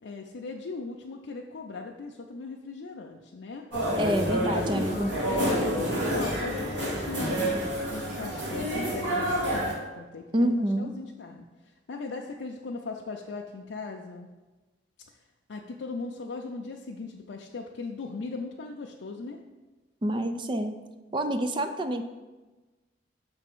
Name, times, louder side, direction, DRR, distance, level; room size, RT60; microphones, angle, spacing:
voice 1, 0.0-3.7 4.0-7.5 7.9-10.5 10.8-14.3 15.5-19.4, left 3 dB, 90° left, 0 dB, 0.5 m, -38 dB
sound 1, 3.7-9.7, equal, 80° right, 2.2 m, -28 dB
voice 2, 4.0-5.1 10.3-10.9 20.0-20.7 21.1-22.0, right 1 dB, 25° right, 7 dB, 0.4 m, -27 dB
6.7 x 3.5 x 6.0 m, 1.2 s
head